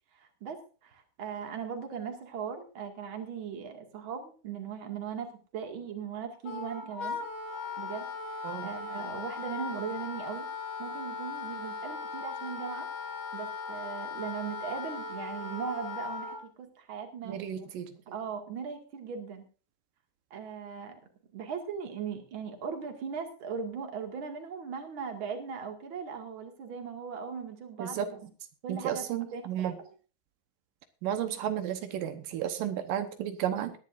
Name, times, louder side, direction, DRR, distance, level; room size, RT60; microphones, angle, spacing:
voice 1, 0.2-7.2 7.8-10.5 10.8-12.9 13.3-16.3 16.6-17.7 18.1-19.4 20.3-21.0 21.3-28.3 28.6-29.0 29.3-29.9, right 6 dB, 40° right, 4 dB, 2.6 m, -39 dB
Wind instrument woodwind instrument, 6.4-16.4, left 4 dB, 75° left, 3.4 m, -38 dB
voice 2, 17.3-17.9 27.8-28.1 28.7-29.7 31.0-33.7, right 10 dB, 85° right, 8 dB, 2.8 m, -33 dB
20.0 x 10.5 x 2.6 m, 0.37 s
omnidirectional pair, 3.8 m